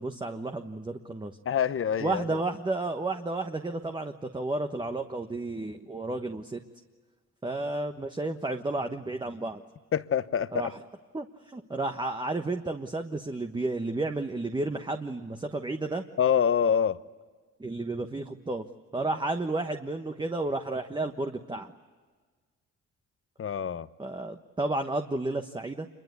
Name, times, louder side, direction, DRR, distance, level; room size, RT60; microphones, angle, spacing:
voice 1, 0.0-1.4 2.0-6.6 7.4-9.6 10.5-10.7 11.1-16.0 17.6-18.6 18.9-21.7 24.0-25.9, right 2 dB, 15° right, 1.3 m, -32 dB
voice 2, 1.4-2.4 9.9-10.7 16.2-17.0 23.4-23.9, left 8 dB, 45° left, 1.0 m, -26 dB
26.5 x 23.0 x 8.3 m
cardioid pair, 90°, 30 cm